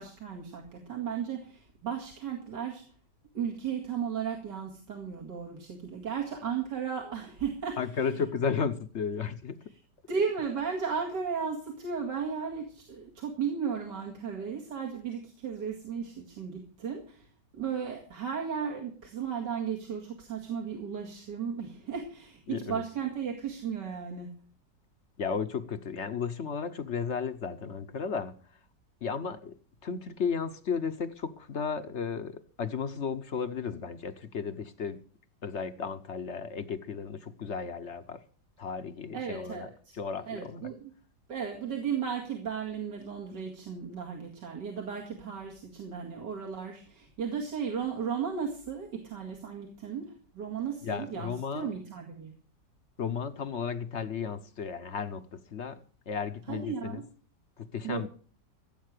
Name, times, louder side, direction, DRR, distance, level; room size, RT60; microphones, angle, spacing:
voice 1, 0.0-2.8 3.3-7.8 10.1-17.3 17.5-24.3 39.1-39.7 40.3-40.9 41.3-52.3 56.5-57.0 57.8-58.1, right 6 dB, 75° right, 2.7 m, -35 dB
voice 2, 7.8-9.6 22.5-22.8 25.2-28.6 29.0-29.5 29.8-35.0 35.4-38.2 38.6-40.7 50.8-51.8 53.0-55.8 56.1-57.0 57.6-58.1, left 6 dB, 50° left, 1.0 m, -34 dB
15.5 x 8.6 x 6.6 m
omnidirectional pair, 1.9 m